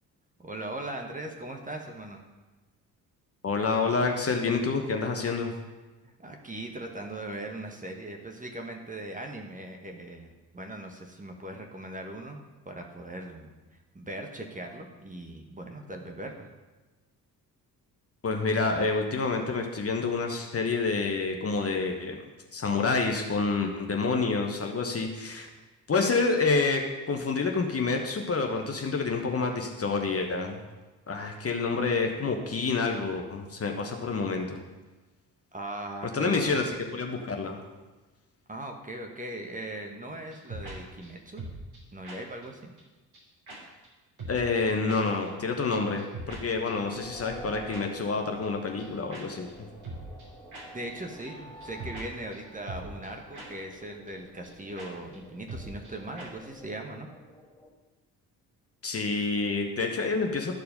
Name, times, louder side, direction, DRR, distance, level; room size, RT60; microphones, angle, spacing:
voice 1, 0.4-2.2 6.0-13.5 13.9-16.5 35.5-36.6 38.5-41.4 41.9-42.7 50.7-57.1, right 1 dB, 15° right, 2 dB, 1.4 m, -39 dB
voice 2, 3.4-5.5 18.2-22.2 22.5-25.5 25.9-30.6 31.1-34.6 36.1-36.6 36.9-37.6 44.3-49.7 58.8-60.5, left 4 dB, 30° left, 3 dB, 1.2 m, -28 dB
sound 1, 40.3-40.8 41.0-41.1 41.4-41.8 42.0-42.2 42.4-42.5 42.8-42.9 43.1-43.2 43.5-43.6 43.8-43.9 44.2-44.6 44.9-45.0 45.3-45.4 45.6-45.7 46.0-46.4 46.7-46.8 47.7-47.8 48.1-48.2 48.4-48.5 48.8-48.9 49.1-49.2 49.5-49.6 49.8-50.3 50.5-50.6 50.9-51.0 51.2-51.3 51.6-52.1 52.3-52.4 52.7-53.1 53.3-53.5 53.7-53.8 54.1-54.2 54.4-54.5 54.8-54.9 55.1-55.2 55.5-55.9 56.2-56.3, right 2 dB, 50° right, 3.2 m, -41 dB
sound 2, 46.4-57.7, equal, 5° left, 1.7 m, -49 dB
13.0 x 4.7 x 5.2 m, 1.2 s
figure-of-eight pair, 45°, 48 cm